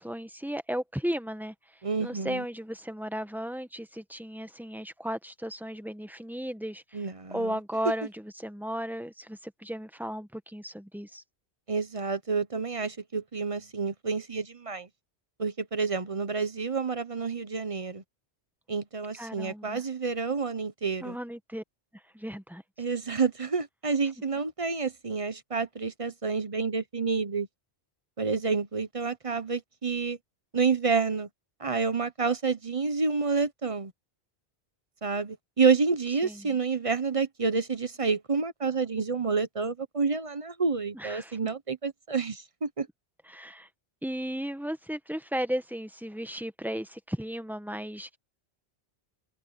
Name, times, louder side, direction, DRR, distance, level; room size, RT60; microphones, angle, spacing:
voice 1, 0.0-1.5 2.0-11.2 19.2-19.8 21.0-21.6 22.1-22.6 36.2-36.6 40.9-41.4 43.3-43.7 44.0-48.2, equal, ahead, 1.0 m, -35 dB
voice 2, 1.8-2.4 6.9-7.6 11.7-14.9 15.4-18.0 18.7-21.2 22.8-27.5 28.2-30.2 30.5-31.3 31.6-33.9 35.0-42.9, right 4 dB, 35° right, 0.9 m, -29 dB
open air
omnidirectional pair, 1.1 m